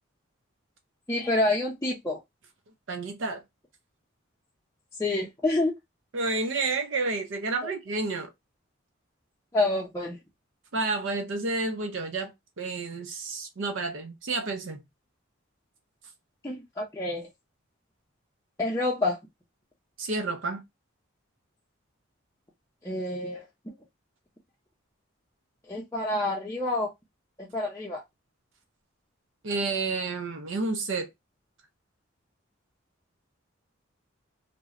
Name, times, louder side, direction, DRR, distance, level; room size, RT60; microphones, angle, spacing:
voice 1, 1.1-2.2 5.0-5.7 9.5-10.2 16.4-17.3 18.6-19.2 22.8-23.5 25.7-26.9 27.4-28.0, left 2 dB, 15° left, 0.5 m, -28 dB
voice 2, 2.9-3.4 6.1-8.3 10.7-14.8 20.0-20.6 29.4-31.1, right 3 dB, 70° right, 0.5 m, -30 dB
2.9 x 2.1 x 2.4 m
head